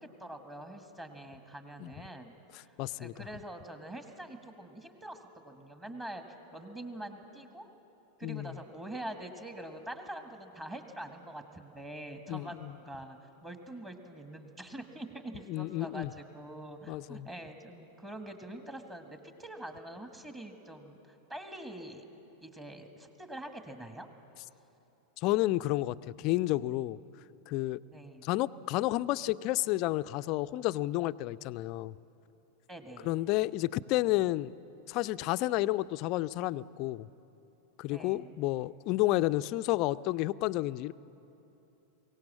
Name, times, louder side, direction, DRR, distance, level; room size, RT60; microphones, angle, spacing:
voice 1, 0.0-7.7 8.2-22.0 22.4-24.1 27.9-28.3 32.7-33.1 37.9-38.3, right 1 dB, 15° right, 6 dB, 1.7 m, -45 dB
voice 2, 2.8-3.1 8.2-8.5 12.3-12.7 15.5-16.1 16.9-17.3 25.2-27.0 27.5-27.8 28.2-31.9 33.0-34.5 34.9-37.1 37.8-40.9, left 17 dB, 40° left, 16 dB, 0.4 m, -31 dB
23.5 x 17.5 x 7.5 m, 3.0 s
figure-of-eight pair, 90°, 0 cm